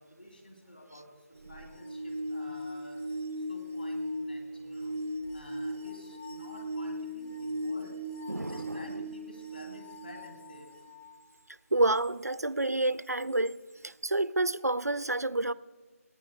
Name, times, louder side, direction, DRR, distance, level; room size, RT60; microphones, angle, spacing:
voice 1, 0.0-5.0 5.3-8.0 8.4-10.7, equal, 40° left, 2.9 m, -51 dB
sound 1, 1.4-11.1 13.5-13.6, equal, 15° right, 0.5 m, -38 dB
voice 2, 8.3-8.8 11.7-13.6 13.8-15.5, right 2 dB, 85° right, 0.5 m, -28 dB
27.0 x 9.7 x 2.2 m
figure-of-eight pair, 165°, 8 cm